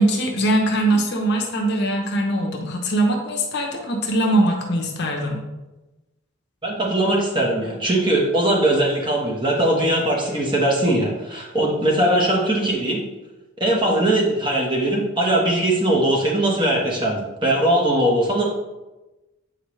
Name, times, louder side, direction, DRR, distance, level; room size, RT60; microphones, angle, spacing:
voice 1, 0.0-5.5, right 1 dB, 50° left, 1 dB, 0.8 m, -21 dB
voice 2, 6.6-13.0 13.6-18.4, right 1 dB, 20° right, -2 dB, 1.2 m, -20 dB
7.8 x 4.5 x 3.2 m, 1.1 s
head